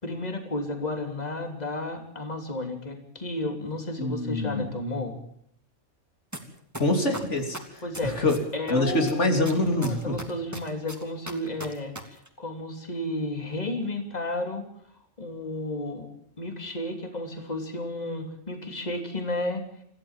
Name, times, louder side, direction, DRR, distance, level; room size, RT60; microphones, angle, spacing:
voice 1, 0.0-5.2 7.8-8.2 8.5-9.2 9.7-14.7 15.2-16.1 16.4-19.6, left 1 dB, 30° left, 4 dB, 3.3 m, -32 dB
voice 2, 4.0-4.7 6.8-7.6 8.0-8.4 8.7-10.1, left 2 dB, 65° left, 4 dB, 3.5 m, -25 dB
sound 1, 6.3-6.4 6.7-8.7 9.1-12.0 12.3-12.4, right 1 dB, 10° right, 3.0 m, -36 dB
27.0 x 16.0 x 7.3 m, 0.69 s
omnidirectional pair, 1.3 m